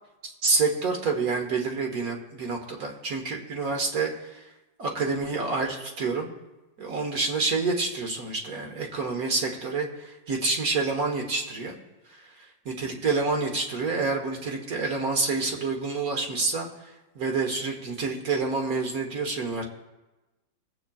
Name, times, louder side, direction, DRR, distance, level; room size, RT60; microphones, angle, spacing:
voice 1, 0.2-4.1 4.8-6.3 6.8-11.8 12.6-16.7 17.1-19.6, right 4 dB, 50° right, 2 dB, 1.6 m, -28 dB
24.0 x 8.1 x 2.4 m, 1.1 s
omnidirectional pair, 2.0 m